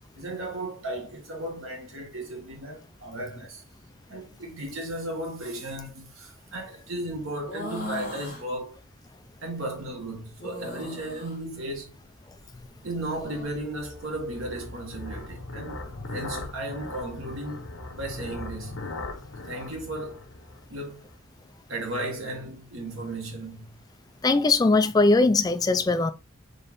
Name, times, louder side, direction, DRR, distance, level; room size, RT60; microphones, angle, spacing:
voice 1, 0.1-3.6 4.1-8.8 9.4-11.9 12.8-15.8 16.1-17.7 18.0-18.9 19.4-20.3 20.7-21.1 21.7-23.8, right 1 dB, 75° right, 1.5 m, -35 dB
sound 1, 7.5-8.4 10.4-11.4 12.9-13.5, left 2 dB, 40° left, 1.3 m, -38 dB
sound 2, 11.8-21.1, left 2 dB, 85° left, 1.0 m, -40 dB
voice 2, 24.2-26.1, left 3 dB, 20° left, 0.3 m, -20 dB
4.0 x 3.2 x 3.6 m
head